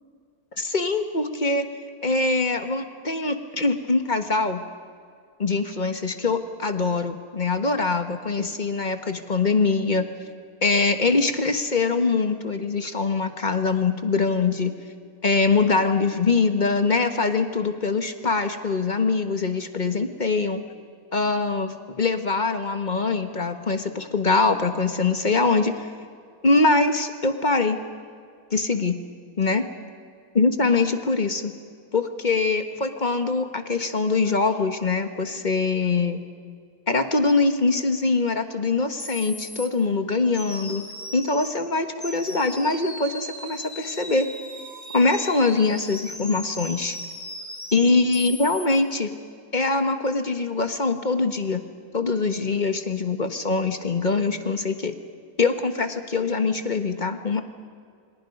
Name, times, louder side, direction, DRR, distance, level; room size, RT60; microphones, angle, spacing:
voice 1, 0.6-1.7 2.0-4.6 5.4-10.1 10.6-14.7 15.2-20.6 21.1-25.9 26.4-27.8 28.5-29.0 29.4-29.6 30.3-31.5 31.9-36.2 36.9-40.8 41.1-44.3 44.9-47.0 47.7-49.1 49.5-51.6 51.9-54.9 55.4-57.4, left 3 dB, 35° left, 7 dB, 1.3 m, -23 dB
sound 1, 38.6-38.7 39.0-39.7 40.3-41.6 42.0-48.7, left 1 dB, 10° left, 3.0 m, -38 dB
28.5 x 25.0 x 5.3 m, 2.2 s
omnidirectional pair, 1.6 m